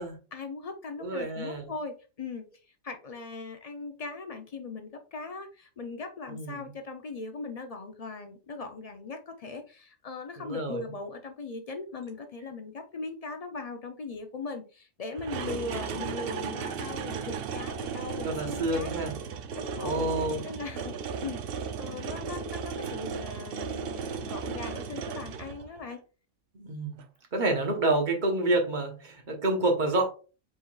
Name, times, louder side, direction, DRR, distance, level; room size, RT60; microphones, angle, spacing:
voice 1, 0.3-18.9 19.6-20.1 20.4-21.4 21.8-26.0, left 3 dB, 50° left, 6 dB, 0.4 m, -39 dB
voice 2, 1.0-1.7 6.3-6.7 10.4-10.8 18.2-19.1 19.7-20.4 26.5-27.0 27.3-30.1, right 2 dB, 40° right, 3 dB, 1.2 m, -28 dB
sound 1, 15.1-25.9 27.0-27.1, right 6 dB, 60° right, 0.6 m, -35 dB
5.0 x 3.8 x 2.3 m, 0.34 s
omnidirectional pair, 1.3 m